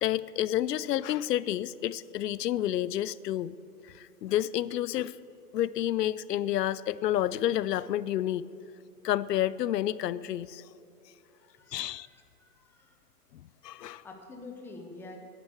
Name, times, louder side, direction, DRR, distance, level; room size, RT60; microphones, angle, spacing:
voice 1, 0.0-3.6 3.9-5.2 5.5-8.5 9.0-10.6 11.7-12.1 13.3-14.0, left 12 dB, 75° left, 19 dB, 0.6 m, -30 dB
voice 2, 11.5-13.0 13.7-15.2, left 3 dB, 5° left, 2 dB, 0.6 m, -48 dB
11.0 x 9.9 x 9.0 m, 2.8 s
hypercardioid pair, 145°, 49 cm